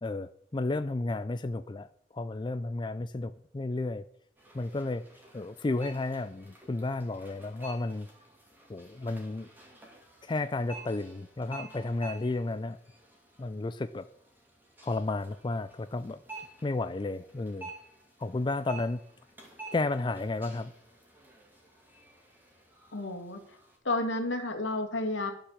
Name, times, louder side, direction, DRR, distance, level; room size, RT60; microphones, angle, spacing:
voice 1, 0.0-1.9 2.1-4.0 4.5-5.0 5.3-8.1 8.7-9.5 10.2-12.8 13.4-14.1 14.8-16.2 16.6-17.7 18.2-19.0 19.7-20.7, left 2 dB, 25° left, 11 dB, 0.4 m, -32 dB
sound 1, 4.4-23.8, right 3 dB, 10° right, 2.6 m, -51 dB
voice 2, 22.9-23.4 23.8-25.3, left 2 dB, 80° left, 5 dB, 2.2 m, -31 dB
12.0 x 5.8 x 7.1 m, 0.63 s
head